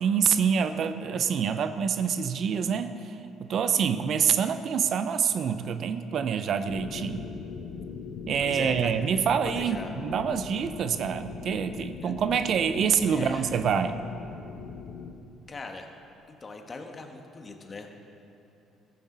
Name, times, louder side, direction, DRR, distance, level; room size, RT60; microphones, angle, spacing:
voice 1, 0.0-7.3 8.3-14.0, right 7 dB, 55° right, 11 dB, 0.6 m, -26 dB
sound 1, 6.7-15.1, left 6 dB, 65° left, 1.0 m, -40 dB
voice 2, 8.4-8.9 9.4-9.9 12.0-12.1 13.1-13.4 15.5-15.9 16.3-17.9, left 3 dB, 35° left, 4 dB, 1.6 m, -40 dB
14.5 x 13.5 x 4.1 m, 2.8 s
hypercardioid pair, 55°, 0 cm